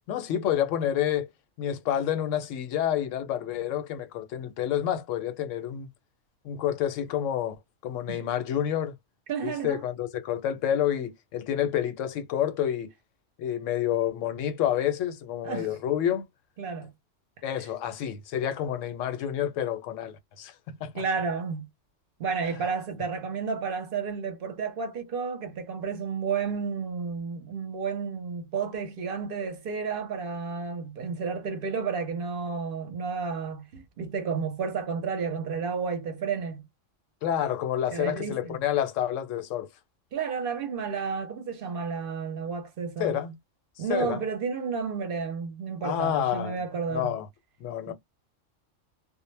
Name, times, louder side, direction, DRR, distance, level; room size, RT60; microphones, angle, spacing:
voice 1, 0.1-1.3 1.6-5.9 6.4-7.6 7.8-8.9 9.4-12.9 13.4-16.2 17.4-21.0 37.2-39.7 43.0-43.4 43.8-44.2 45.8-46.6 46.9-47.3 47.6-47.9, left 10 dB, 80° left, 0.9 m, -29 dB
voice 2, 9.3-9.8 15.4-15.7 16.6-16.9 20.9-21.7 22.2-36.6 37.9-38.6 40.1-43.2 43.8-47.2 47.9-48.0, right 5 dB, 55° right, 0.7 m, -31 dB
2.0 x 2.0 x 3.1 m
omnidirectional pair, 1.3 m